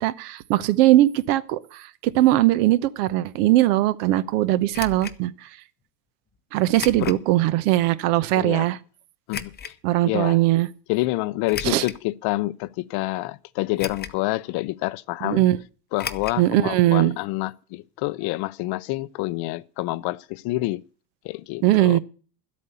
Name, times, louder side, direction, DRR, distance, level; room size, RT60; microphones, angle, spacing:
voice 1, 0.0-1.8 2.1-5.3 6.5-8.8 9.8-10.7 11.6-11.8 15.2-15.6 16.4-17.2 21.6-22.0, right 15 dB, 65° right, 1.0 m, -20 dB
sound 1, 4.7-5.2 6.7-7.2 7.8-7.9 9.3-9.7 11.4-12.0 12.7-12.8 13.8-14.3 14.5-14.6 16.0-16.4 16.7-16.8 17.1-17.2, left 7 dB, 20° left, 0.8 m, -35 dB
voice 2, 8.3-8.7 9.3-9.5 10.1-10.4 10.9-15.4 15.9-20.8 21.2-22.0, left 20 dB, 50° left, 0.6 m, -27 dB
12.0 x 8.4 x 6.9 m
supercardioid pair, 105°, 50 cm